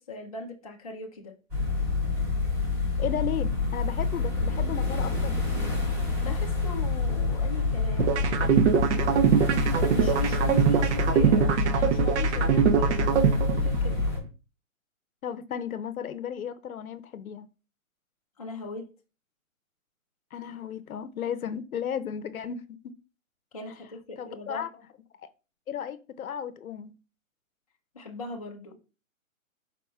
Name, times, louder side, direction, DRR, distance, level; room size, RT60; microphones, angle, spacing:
voice 1, 0.0-1.3 6.2-8.8 9.9-14.0 18.4-18.9 23.5-24.7 27.9-28.8, left 2 dB, 30° left, 0.4 m, -40 dB
sound 1, 1.5-14.2, left 3 dB, 15° right, 0.8 m, -27 dB
voice 2, 3.0-5.7 15.2-17.5 20.3-22.9 24.2-24.7 25.7-26.9, left 8 dB, 85° left, 0.6 m, -34 dB
sound 2, 8.0-14.0, right 8 dB, 55° right, 0.5 m, -23 dB
4.2 x 4.1 x 2.2 m
hypercardioid pair, 150°, 41 cm